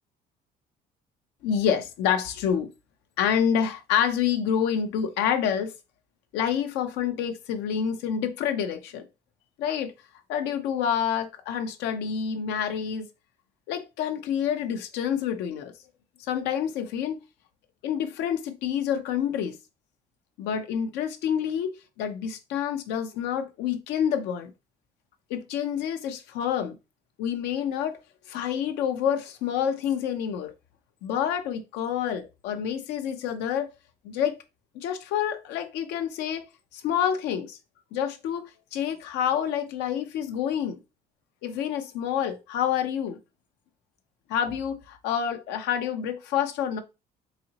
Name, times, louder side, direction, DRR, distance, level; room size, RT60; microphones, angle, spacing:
voice 1, 1.4-2.7 3.2-5.7 6.3-9.0 9.6-9.9 10.3-13.1 13.7-15.7 16.3-17.2 17.8-19.6 20.4-24.5 25.3-26.8 27.2-28.0 28.3-30.5 31.0-33.7 34.0-34.4 34.7-36.5 36.7-37.6 37.9-40.8 41.4-43.2 44.3-46.8, left 8 dB, 90° left, 0.6 m, -28 dB
4.1 x 2.8 x 2.7 m
cardioid pair, 110°, 17 cm